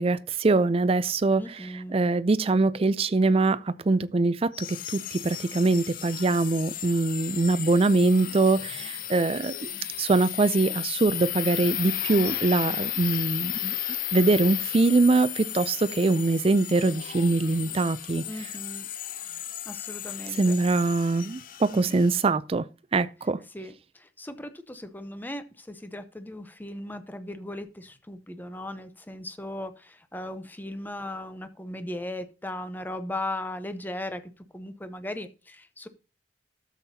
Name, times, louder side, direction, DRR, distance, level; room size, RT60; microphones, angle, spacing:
voice 1, 0.0-9.7 10.0-13.7 14.1-18.2 20.3-22.7 22.9-23.4, right 3 dB, 30° right, 0.4 m, -23 dB
voice 2, 1.4-2.0 18.3-18.9 19.7-20.5 21.7-22.0 23.5-34.2 34.5-35.9, left 1 dB, 10° left, 0.7 m, -37 dB
sound 1, 4.5-22.2, left 12 dB, 50° left, 0.6 m, -34 dB
13.0 x 7.3 x 2.8 m
head